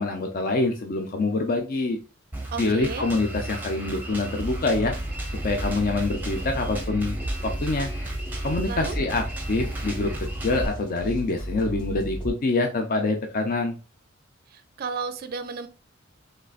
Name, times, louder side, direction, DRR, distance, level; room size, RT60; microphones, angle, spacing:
voice 1, 0.0-2.0 2.6-5.0 5.3-7.2 7.4-7.9 8.4-10.1 10.4-13.8, left 3 dB, 45° left, 4 dB, 0.5 m, -25 dB
Drum kit, 2.3-10.7, right 2 dB, 10° right, 0.7 m, -35 dB
voice 2, 2.5-3.1 8.7-9.0 14.5-15.7, right 5 dB, 45° right, 9 dB, 0.4 m, -33 dB
sound 1, 4.4-12.3, equal, 25° left, 2.1 m, -33 dB
3.7 x 3.2 x 2.4 m, 0.33 s
head